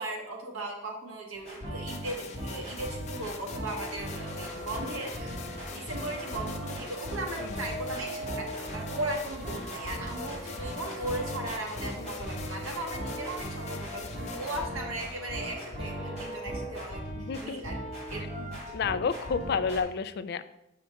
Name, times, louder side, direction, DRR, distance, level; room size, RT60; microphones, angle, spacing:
voice 1, 0.0-5.4 5.7-18.4, right 2 dB, 85° right, 0 dB, 1.5 m, -37 dB
sound 1, 1.3-19.8, equal, 30° right, 2.7 m, -39 dB
sound 2, 1.9-14.7, left 4 dB, 35° left, 0.7 m, -44 dB
sound 3, 4.1-17.0, equal, ahead, 1.4 m, -43 dB
voice 2, 17.2-17.6 18.7-20.4, left 5 dB, 50° left, 13 dB, 0.3 m, -30 dB
7.1 x 5.5 x 3.5 m, 0.84 s
head